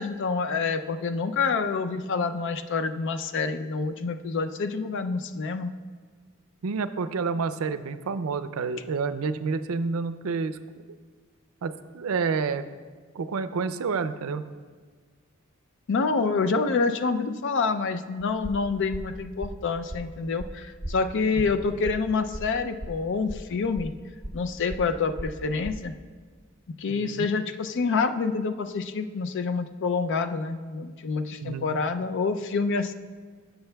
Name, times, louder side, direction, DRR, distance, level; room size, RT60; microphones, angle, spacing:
voice 1, 0.0-5.7 15.9-23.9 24.3-25.9 26.8-32.9, left 4 dB, 60° left, 9 dB, 0.4 m, -27 dB
voice 2, 6.6-10.6 11.6-12.6 13.1-14.4 21.4-21.6 26.9-27.3 31.4-31.7, right 5 dB, 85° right, 12 dB, 0.4 m, -29 dB
sound 1, 18.2-25.9, equal, 20° right, 1.0 m, -38 dB
16.0 x 6.9 x 2.3 m, 1.5 s
head